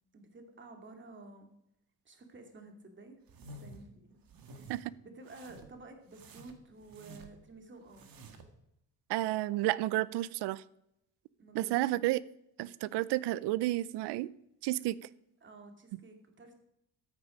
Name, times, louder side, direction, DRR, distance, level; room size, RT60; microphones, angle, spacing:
voice 1, 0.1-1.5 2.0-3.2 3.6-4.2 4.5-4.7 5.0-8.1 11.4-11.7 15.4-16.5, right 2 dB, 30° right, 2.4 m, -52 dB
sound 1, 3.3-3.9 4.2-4.8 5.2-5.8 6.1-7.5 7.9-8.5, right 2 dB, 55° right, 1.9 m, -51 dB
voice 2, 9.1-10.6 11.5-12.2 12.6-14.3 14.6-15.0, right 16 dB, 75° right, 0.6 m, -31 dB
13.0 x 9.0 x 5.1 m
cardioid pair, 115°, 41 cm